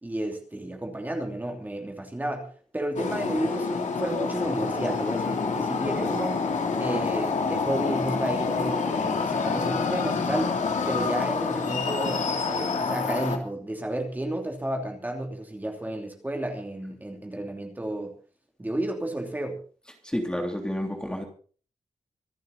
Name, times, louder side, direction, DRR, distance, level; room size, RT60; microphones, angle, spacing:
voice 1, 0.0-6.4 6.8-10.5 10.9-18.1 18.6-19.6, right 1 dB, 15° right, 2 dB, 3.0 m, -32 dB
sound 1, 3.0-13.4, left 4 dB, 85° left, 3.3 m, -27 dB
voice 2, 20.0-21.2, equal, 5° left, 2 dB, 3.1 m, -30 dB
26.0 x 9.3 x 4.2 m, 0.41 s
wide cardioid pair, 165°, 12 cm